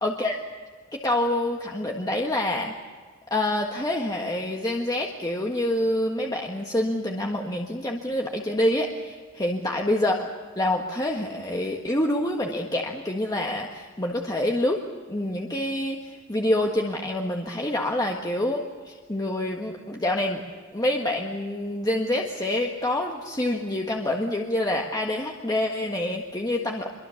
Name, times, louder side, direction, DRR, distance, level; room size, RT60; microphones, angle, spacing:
voice 1, 0.0-0.4 0.9-2.8 3.3-10.3 10.6-14.8 15.1-20.4 20.7-26.9, left 1 dB, 20° left, 1 dB, 1.6 m, -27 dB
25.5 x 23.5 x 7.2 m, 1.5 s
head